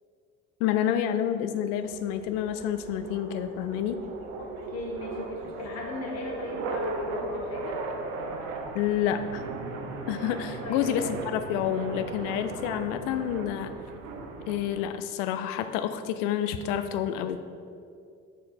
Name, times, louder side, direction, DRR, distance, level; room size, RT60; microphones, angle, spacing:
voice 1, 0.6-4.0 8.7-9.5 10.1-13.8 14.5-17.4, left 10 dB, 60° left, 10 dB, 0.5 m, -29 dB
sound 1, 1.8-14.8, right 3 dB, 70° right, 0.7 m, -37 dB
voice 2, 4.4-7.8 10.6-11.1, left 1 dB, 40° left, -1 dB, 1.1 m, -37 dB
4.9 x 4.6 x 4.2 m, 2.4 s
figure-of-eight pair, 60°, 41 cm